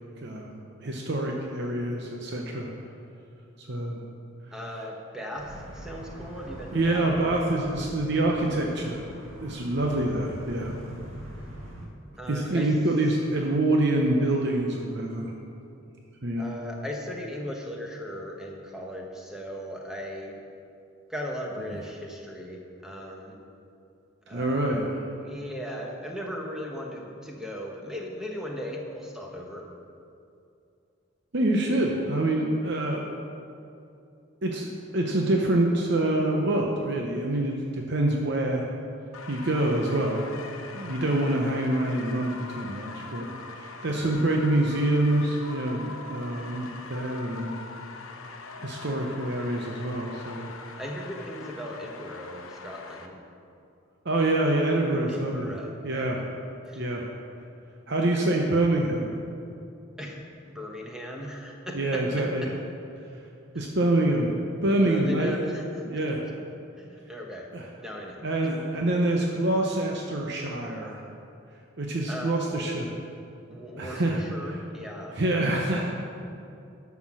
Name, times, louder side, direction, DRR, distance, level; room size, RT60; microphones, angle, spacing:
voice 1, 0.8-2.7 3.6-4.0 6.7-9.0 9.4-10.7 12.3-15.3 16.2-16.5 24.3-24.8 31.3-33.0 34.4-38.6 39.3-40.3 40.7-47.6 48.6-50.5 54.0-55.6 55.8-56.2 56.7-57.1 57.9-59.1 61.7-62.4 63.5-64.3 64.6-65.3 65.8-66.2 67.5-67.7 68.2-71.0 71.8-72.9 73.5-74.6 75.1-75.9, right 1 dB, 55° right, 0 dB, 0.8 m, -26 dB
voice 2, 4.5-7.1 12.2-12.7 16.4-20.3 21.1-23.4 24.3-24.7 25.2-29.7 50.8-53.2 55.1-56.2 56.7-56.8 60.0-60.2 60.5-62.5 64.8-66.1 66.8-67.5 67.8-68.2 72.1-72.4 73.5-75.2, equal, 5° right, -1 dB, 1.1 m, -37 dB
sound 1, 5.4-11.9, right 1 dB, 70° right, 1.7 m, -42 dB
sound 2, 39.1-53.1, left 4 dB, 80° left, 0.8 m, -42 dB
11.5 x 6.0 x 6.2 m, 2.6 s
head